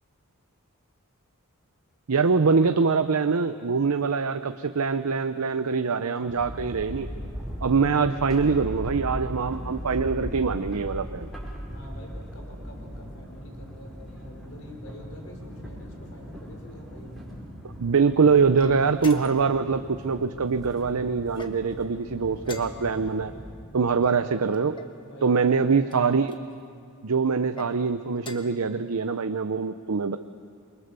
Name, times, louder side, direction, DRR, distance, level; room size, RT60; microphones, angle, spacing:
voice 1, 2.1-7.1 7.6-11.3 17.6-23.3 23.7-24.8 25.2-26.4 27.0-30.2, right 5 dB, 90° right, 9 dB, 0.7 m, -24 dB
sound 1, 6.3-23.5, equal, ahead, 5.4 m, -38 dB
voice 2, 11.7-17.3 23.7-24.2 24.9-26.0 27.1-27.3, left 1 dB, 70° left, 2 dB, 4.7 m, -47 dB
sound 2, 18.5-19.6 21.3-21.9 22.4-23.1 24.0-25.0 25.9-26.4 27.4-27.7 28.2-28.6, left 3 dB, 20° left, 1.3 m, -45 dB
27.5 x 24.0 x 6.8 m, 2.3 s
head